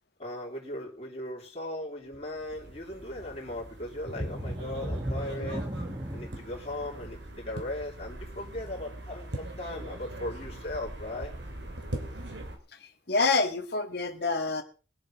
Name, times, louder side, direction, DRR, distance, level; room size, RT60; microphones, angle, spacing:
voice 1, 0.2-5.7 6.1-11.3, left 1 dB, 35° left, -3 dB, 3.4 m, -38 dB
sound 1, 2.1-12.6, right 1 dB, 70° right, 2.9 m, -42 dB
sound 2, 4.0-9.5 9.9-10.1 10.6-10.7, equal, 20° right, 1.1 m, -37 dB
voice 2, 12.8-14.6, left 3 dB, 55° left, 4 dB, 1.7 m, -27 dB
21.5 x 7.5 x 5.1 m, 0.36 s
head